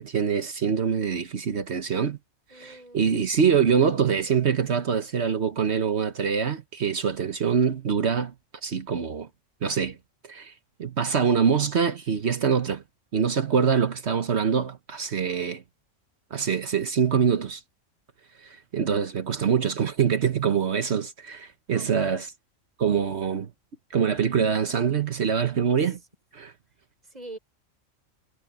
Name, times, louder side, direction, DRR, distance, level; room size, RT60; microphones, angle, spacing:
voice 1, 0.0-2.2 2.5-8.3 8.6-9.3 9.6-10.0 10.2-10.5 10.8-12.8 13.1-15.6 16.3-17.6 18.4-22.3 22.8-23.5 23.9-26.0 26.3-26.5, right 7 dB, 60° right, 1.3 m, -24 dB
voice 2, 2.5-3.0 15.3-15.5 21.7-22.3 25.8-26.1 27.0-27.4, right 2 dB, 30° right, 4.2 m, -43 dB
omnidirectional pair, 1.4 m